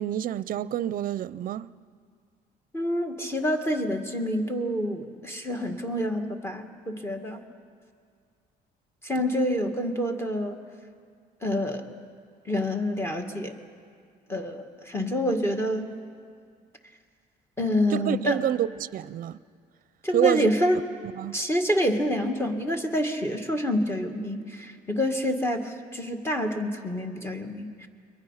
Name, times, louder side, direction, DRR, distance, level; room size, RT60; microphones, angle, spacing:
voice 1, 0.0-1.7 17.9-19.4 20.1-20.5 21.1-21.4, right 11 dB, 55° right, 0.6 m, -27 dB
voice 2, 2.7-7.4 9.0-10.6 11.4-11.9 12.5-13.6 14.3-16.0 17.6-18.5 20.0-20.9 21.3-27.9, equal, 15° left, 2.1 m, -27 dB
29.5 x 23.0 x 5.8 m
cardioid pair, 110°, 17 cm